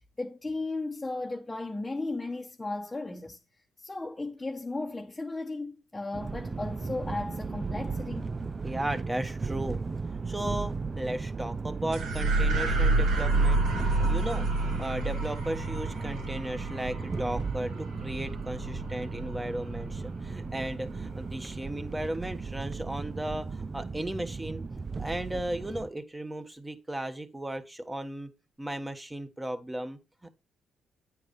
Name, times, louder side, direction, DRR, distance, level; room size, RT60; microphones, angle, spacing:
voice 1, 0.2-3.4 3.8-8.3, left 2 dB, 15° left, 1.1 m, -35 dB
sound 1, 6.1-25.9, right 4 dB, 30° right, 0.4 m, -36 dB
voice 2, 8.6-9.8 10.3-24.6 25.0-28.3 28.6-30.3, right 1 dB, 10° right, 1.3 m, -35 dB
sound 2, 11.9-20.5, right 2 dB, 90° right, 4.4 m, -29 dB
9.3 x 4.7 x 5.3 m
cardioid pair, 90°, 0 cm